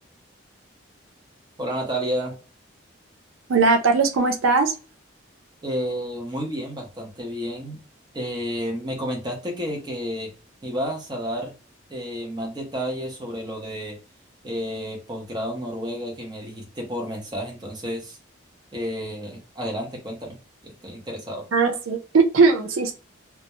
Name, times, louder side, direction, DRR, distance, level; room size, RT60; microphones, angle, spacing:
voice 1, 1.6-2.3 5.6-7.8 8.1-10.3 10.6-11.5 11.9-14.0 14.4-18.2 18.7-20.4 20.6-21.4, equal, 20° right, 0 dB, 0.6 m, -31 dB
voice 2, 3.5-4.7 21.5-22.9, right 4 dB, 90° right, 6 dB, 0.5 m, -19 dB
2.3 x 2.1 x 2.8 m, 0.34 s
head